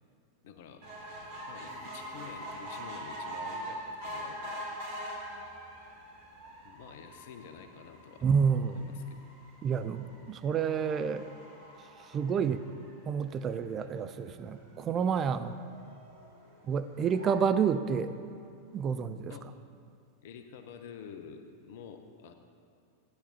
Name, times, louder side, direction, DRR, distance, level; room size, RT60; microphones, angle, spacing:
voice 1, 0.4-0.8 1.5-4.7 6.6-8.2 8.6-9.3 13.8-13.9 19.3-19.5 20.2-22.3, left 7 dB, 50° left, 7 dB, 0.7 m, -49 dB
sound 1, 0.8-13.4 14.0-14.1 14.4-14.5 14.7-14.8, equal, 50° right, 2.8 m, -43 dB
sound 2, 1.7-3.2, equal, 10° left, 2.0 m, -57 dB
voice 2, 8.2-8.9 9.6-11.3 12.1-12.6 13.1-15.6 16.7-18.1 18.7-19.3, right 6 dB, 30° right, 11 dB, 0.4 m, -29 dB
sound 3, 13.8-18.2, right 2 dB, 85° right, 2.4 m, -54 dB
14.5 x 10.0 x 2.8 m, 2.6 s
figure-of-eight pair, 90°, 0 cm